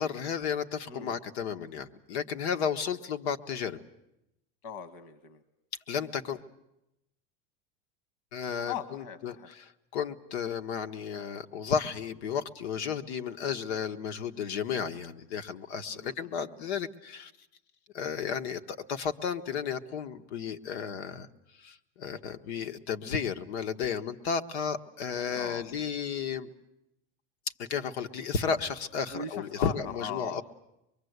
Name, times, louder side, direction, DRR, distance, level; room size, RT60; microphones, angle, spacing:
voice 1, 0.0-3.8 5.9-6.4 8.3-9.3 9.9-17.3 17.9-21.3 21.6-26.5 27.6-30.4, left 7 dB, 90° left, 9 dB, 1.4 m, -33 dB
voice 2, 0.9-1.2 4.6-5.4 8.7-9.5 15.9-16.4 25.3-25.7 29.1-30.4, left 6 dB, 60° left, 12 dB, 1.3 m, -39 dB
24.0 x 23.0 x 8.1 m, 0.86 s
supercardioid pair, 180°, 32 cm